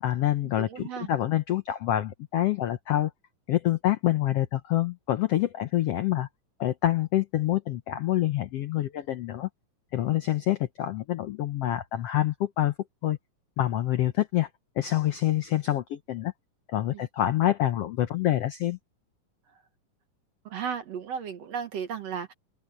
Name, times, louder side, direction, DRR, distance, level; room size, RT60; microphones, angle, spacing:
voice 1, 0.0-3.1 3.5-6.3 6.6-9.5 9.9-12.7 13.0-13.2 13.6-14.5 14.8-16.3 16.7-18.8, left 13 dB, 85° left, 1.3 m, -26 dB
voice 2, 0.6-1.1 16.9-17.0 20.5-22.3, right 7 dB, 55° right, 2.2 m, -34 dB
omnidirectional pair, 4.0 m